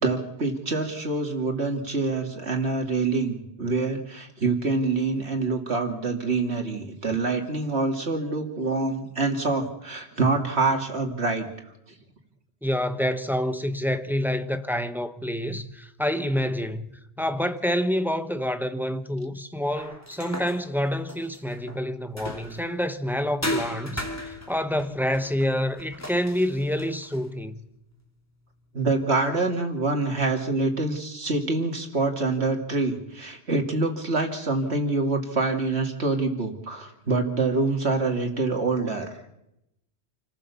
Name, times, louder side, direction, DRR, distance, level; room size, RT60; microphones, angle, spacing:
voice 1, 0.0-11.5 28.7-39.3, right 3 dB, 75° right, 2.8 m, -26 dB
voice 2, 12.6-16.9 17.2-27.6, equal, ahead, 0.9 m, -27 dB
sound 1, 19.7-22.8 23.4-27.3, left 1 dB, 15° left, 2.9 m, -36 dB
28.0 x 14.5 x 7.1 m
omnidirectional pair, 1.1 m